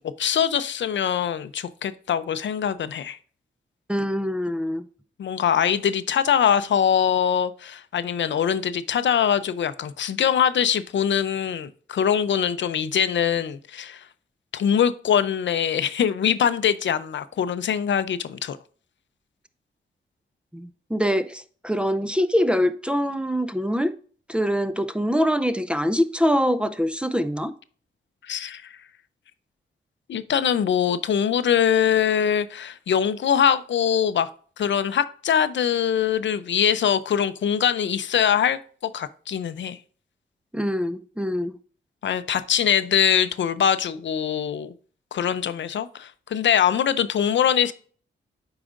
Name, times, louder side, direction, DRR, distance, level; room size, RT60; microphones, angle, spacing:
voice 1, 0.0-3.2 5.2-14.1 14.5-18.6 28.2-28.7 30.1-34.3 34.6-39.8 42.0-44.7 45.1-47.7, left 8 dB, 65° left, 0.5 m, -23 dB
voice 2, 3.9-4.8 20.5-23.9 24.3-27.5 40.5-41.6, equal, 5° right, 0.5 m, -24 dB
8.7 x 4.9 x 2.5 m
cardioid pair, 85°, 20 cm